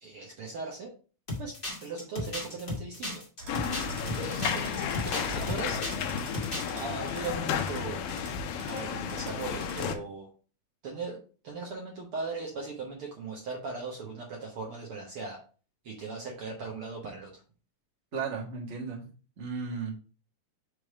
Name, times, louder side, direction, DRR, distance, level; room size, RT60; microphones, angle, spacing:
voice 1, 0.0-0.9 1.4-1.5 1.8-3.2 4.2-5.8 6.7-8.0 8.7-10.3 10.8-15.4 15.8-17.3, right 4 dB, 70° right, -1 dB, 1.3 m, -38 dB
sound 1, 1.3-6.0 6.3-6.8, left 1 dB, 30° left, 1.0 m, -35 dB
sound 2, 3.4-10.0, right 3 dB, 50° right, 2.4 m, -45 dB
sound 3, 3.5-10.0, left 7 dB, 80° left, 2.2 m, -33 dB
voice 2, 18.1-19.1 19.4-20.0, right 5 dB, 90° right, -2 dB, 0.6 m, -35 dB
5.8 x 3.3 x 4.8 m, 0.37 s
omnidirectional pair, 3.9 m